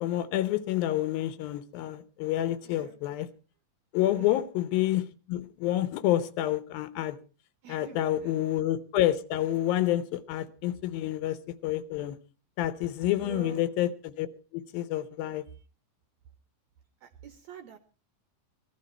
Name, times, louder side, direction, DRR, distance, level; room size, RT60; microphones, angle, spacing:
voice 1, 0.0-3.3 3.9-7.2 7.7-11.4 11.6-12.2 12.6-14.3 14.5-15.4, left 13 dB, 80° left, 2.6 m, -28 dB
voice 2, 2.6-3.0 4.2-4.5 7.6-8.3 13.2-13.6 17.0-17.8, right 9 dB, 70° right, 1.8 m, -46 dB
19.5 x 12.5 x 4.4 m
omnidirectional pair, 4.2 m